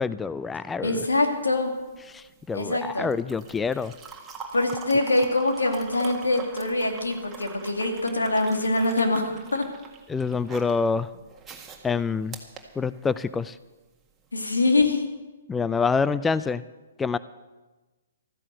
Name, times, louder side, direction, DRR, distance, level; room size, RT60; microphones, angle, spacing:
voice 1, 0.0-1.0 2.1-3.9 10.1-11.1 11.8-12.4 12.8-13.6 15.5-16.6 17.0-17.2, left 5 dB, 10° left, 16 dB, 0.3 m, -26 dB
voice 2, 0.8-1.7 2.5-3.1 4.5-9.6 14.3-15.1, left 2 dB, 90° left, 4 dB, 2.4 m, -24 dB
sound 1, 1.1-13.4 14.7-14.9, right 5 dB, 15° right, 1.9 m, -44 dB
13.5 x 9.8 x 7.8 m, 1.2 s
hypercardioid pair, 130°, 0 cm